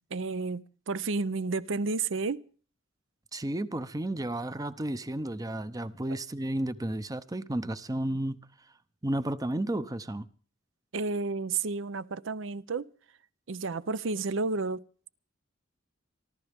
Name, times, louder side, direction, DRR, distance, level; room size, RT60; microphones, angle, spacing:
voice 1, 0.1-2.4 6.1-6.2 10.9-12.9 13.5-14.8, right 4 dB, 65° right, 0.6 m, -31 dB
voice 2, 3.3-8.4 9.0-10.3, right 1 dB, 20° right, 0.7 m, -32 dB
26.0 x 12.5 x 3.5 m
head